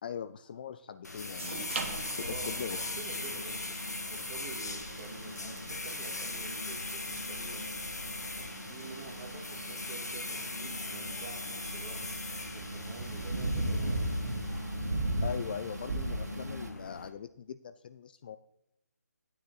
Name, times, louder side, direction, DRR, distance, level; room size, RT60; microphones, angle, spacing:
voice 1, 0.0-2.8 15.2-18.4, left 8 dB, 35° left, 12 dB, 0.4 m, -41 dB
sound 1, 1.0-17.1, left 3 dB, 80° left, 1.6 m, -40 dB
sound 2, 1.4-9.4, right 4 dB, 45° right, 1.8 m, -46 dB
sound 3, 1.7-16.7, right 1 dB, 75° right, 2.1 m, -39 dB
voice 2, 2.2-7.9 8.3-12.0 12.5-14.3, right 4 dB, 20° right, 2 dB, 2.0 m, -48 dB
14.0 x 9.6 x 3.9 m, 0.81 s
figure-of-eight pair, 155°, 9 cm